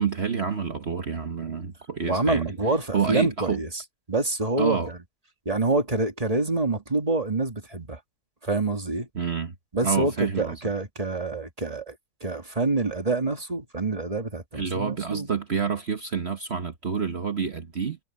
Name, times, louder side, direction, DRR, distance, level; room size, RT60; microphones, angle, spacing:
voice 1, 0.0-2.5 2.9-3.6 4.6-4.9 9.1-9.5 9.8-10.6 14.5-18.0, right 6 dB, 45° right, 1.4 m, -28 dB
voice 2, 2.1-3.8 4.1-5.0 5.5-8.0 8.4-9.1 9.7-12.0 12.2-15.3, right 2 dB, 25° right, 1.9 m, -26 dB
omnidirectional pair, 1.7 m